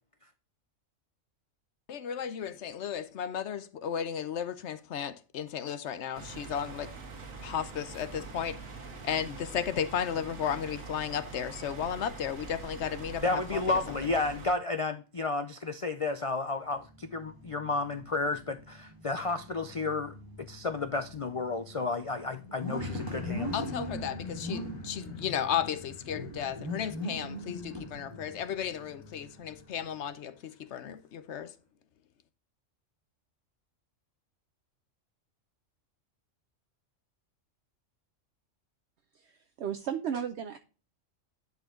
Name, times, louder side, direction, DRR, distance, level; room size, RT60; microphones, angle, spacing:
voice 1, 1.9-6.9 7.4-8.6 9.0-13.8 23.5-31.5, left 8 dB, 65° left, 1.0 m, -34 dB
sound 1, 6.1-14.5, right 4 dB, 85° right, 1.8 m, -44 dB
voice 2, 13.2-23.6, left 3 dB, 50° left, 0.4 m, -32 dB
sound 2, 16.7-30.0, left 1 dB, 15° right, 1.8 m, -42 dB
sound 3, 22.8-30.1 30.7-30.8, left 4 dB, 30° left, 2.5 m, -46 dB
voice 3, 39.1-40.6, right 8 dB, 65° right, 0.9 m, -35 dB
10.5 x 4.5 x 3.7 m
omnidirectional pair, 1.3 m